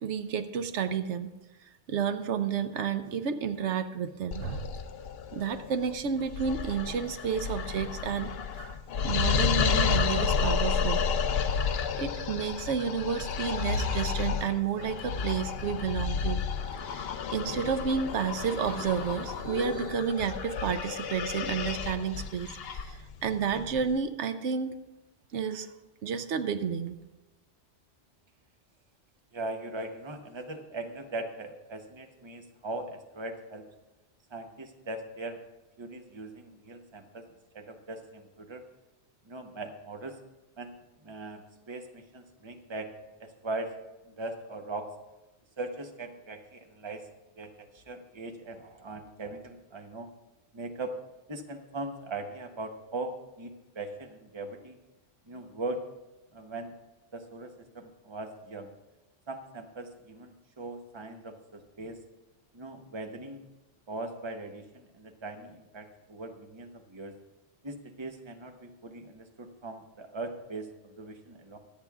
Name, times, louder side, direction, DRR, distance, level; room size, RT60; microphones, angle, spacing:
voice 1, 0.0-1.3 1.6-4.7 5.3-8.7 9.0-11.1 12.0-16.4 16.9-24.7 25.3-25.7 26.0-27.0, right 7 dB, 85° right, 10 dB, 1.0 m, -31 dB
sound 1, 4.3-24.0, left 6 dB, 65° left, 0.8 m, -31 dB
voice 2, 29.3-33.6 34.3-35.4 35.8-37.2 37.5-38.6 39.3-40.2 40.6-40.7 41.0-42.9 43.2-43.7 44.1-44.9 45.6-47.1 47.4-50.1 50.5-50.9 51.3-54.8 55.3-55.8 56.3-56.7 57.1-58.7 59.3-62.0 62.5-63.4 63.9-67.1 67.6-71.6, right 2 dB, 25° right, 5 dB, 0.9 m, -40 dB
24.0 x 8.6 x 2.4 m, 1.0 s
omnidirectional pair, 1.2 m